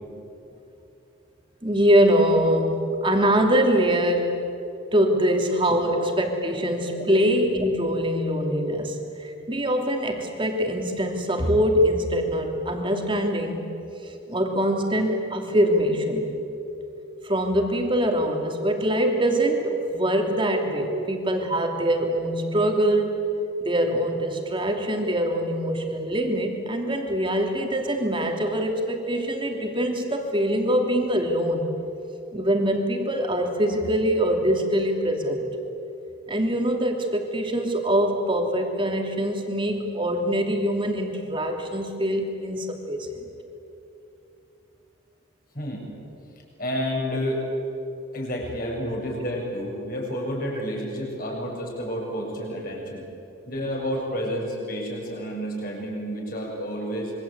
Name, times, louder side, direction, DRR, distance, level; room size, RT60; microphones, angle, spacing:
voice 1, 1.6-4.4 4.9-13.6 14.0-16.3 17.2-23.3 23.6-31.7 32.3-35.4 36.3-43.2, equal, 25° right, 3 dB, 2.9 m, -23 dB
voice 2, 46.6-47.4 48.1-53.1 53.5-57.1, equal, 45° left, -1 dB, 7.2 m, -30 dB
26.5 x 24.0 x 8.8 m, 2.9 s
head